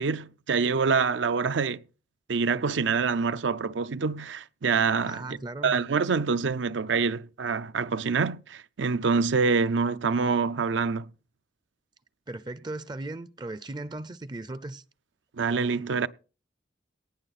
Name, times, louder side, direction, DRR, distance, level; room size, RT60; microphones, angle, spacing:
voice 1, 0.0-1.8 2.3-5.4 5.6-11.1 15.4-16.1, right 5 dB, 80° right, 0.6 m, -26 dB
voice 2, 5.0-5.8 12.3-14.8, right 2 dB, 25° right, 0.4 m, -37 dB
18.0 x 6.7 x 4.1 m
head